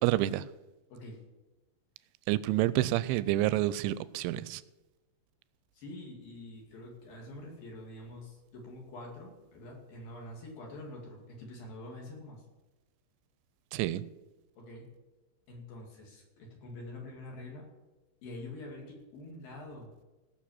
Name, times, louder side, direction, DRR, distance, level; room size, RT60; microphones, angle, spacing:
voice 1, 0.0-0.5 2.3-4.6 13.7-14.0, right 15 dB, 85° right, 2.8 m, -28 dB
voice 2, 5.7-12.4 14.6-14.9 15.5-17.7 18.2-19.9, left 1 dB, 55° left, 3.7 m, -46 dB
17.0 x 6.5 x 7.3 m
omnidirectional pair, 5.5 m